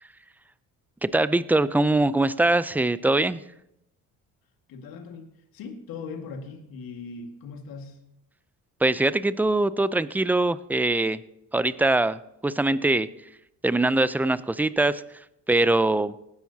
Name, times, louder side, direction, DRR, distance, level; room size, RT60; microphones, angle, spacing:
voice 1, 1.0-3.4 8.8-11.2 11.5-13.1 13.6-15.0 15.5-16.1, right 2 dB, 5° right, 16 dB, 0.5 m, -22 dB
voice 2, 4.7-8.0, left 4 dB, 70° left, 4 dB, 2.0 m, -39 dB
19.0 x 10.5 x 2.8 m, 0.80 s
supercardioid pair, 65°, 36 cm